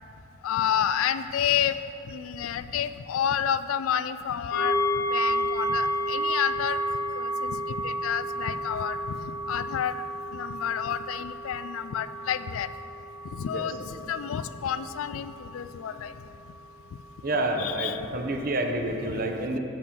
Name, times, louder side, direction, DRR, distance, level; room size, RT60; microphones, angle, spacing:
voice 1, 0.4-1.8 2.0-6.8 7.1-10.0 10.3-12.7 13.3-16.1 17.6-18.1 19.1-19.2, left 9 dB, 80° left, 13 dB, 0.3 m, -30 dB
sound 1, 4.5-16.2 16.6-16.7, equal, 60° left, 0.9 m, -31 dB
voice 2, 17.2-19.6, right 1 dB, 45° right, 3 dB, 0.7 m, -28 dB
8.5 x 7.5 x 3.8 m, 2.8 s
head